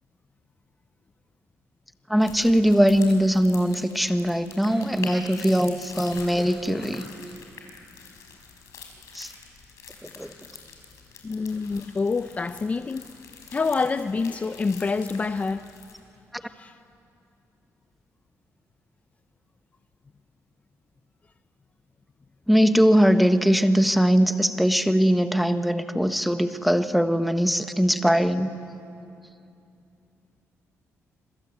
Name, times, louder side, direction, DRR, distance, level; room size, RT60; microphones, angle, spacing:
voice 1, 2.1-7.1 9.1-9.3 10.0-10.3 22.5-28.5, equal, ahead, 9 dB, 1.1 m, -21 dB
sound 1, 2.2-16.0, left 5 dB, 75° left, 5.5 m, -45 dB
voice 2, 11.2-13.1 13.5-15.7 16.4-16.8, left 4 dB, 25° left, 11 dB, 0.6 m, -27 dB
26.5 x 25.5 x 8.2 m, 2.6 s
cardioid pair, 120°, 6 cm